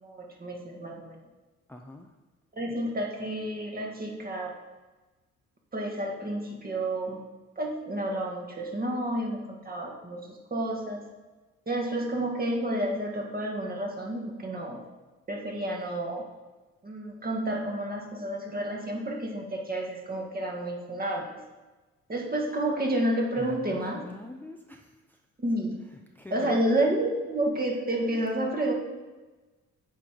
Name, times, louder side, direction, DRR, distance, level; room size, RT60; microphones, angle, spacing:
voice 1, 0.0-1.2 2.5-4.5 5.7-7.2 7.5-11.1 11.7-14.8 15.3-16.2 16.8-21.4 22.1-24.0 25.4-25.8 26.3-28.7, right 1 dB, 30° right, 0 dB, 1.7 m, -30 dB
voice 2, 1.7-2.1 23.4-25.2 25.9-26.6 28.1-28.2, left 2 dB, 5° left, 3 dB, 0.6 m, -45 dB
9.0 x 4.5 x 5.1 m, 1.2 s
cardioid pair, 90°, 30 cm